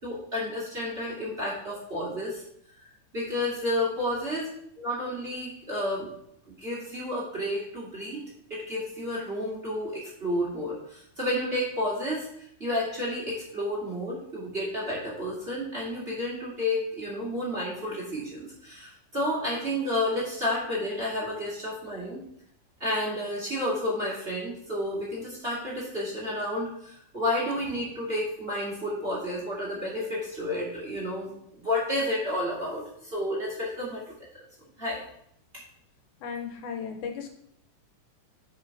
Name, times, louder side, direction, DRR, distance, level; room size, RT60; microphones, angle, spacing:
voice 1, 0.0-2.4 3.1-4.5 4.8-6.1 6.6-8.2 8.5-12.3 12.6-22.2 22.8-34.0 34.3-34.4 34.8-35.0, left 1 dB, 20° right, -6 dB, 2.0 m, -31 dB
voice 2, 36.2-37.3, left 6 dB, 80° left, 4 dB, 2.2 m, -35 dB
6.6 x 5.0 x 4.6 m, 0.70 s
omnidirectional pair, 3.5 m